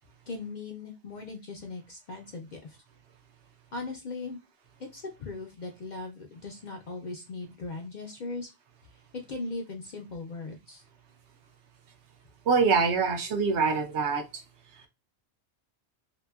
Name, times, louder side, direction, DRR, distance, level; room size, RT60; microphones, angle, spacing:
voice 1, 0.3-2.8 3.7-4.4 4.9-8.5 9.3-10.8, left 3 dB, 60° left, 2 dB, 0.5 m, -39 dB
voice 2, 12.5-14.2, right 5 dB, 75° right, 5 dB, 0.9 m, -24 dB
2.8 x 2.6 x 2.3 m, 0.25 s
omnidirectional pair, 1.2 m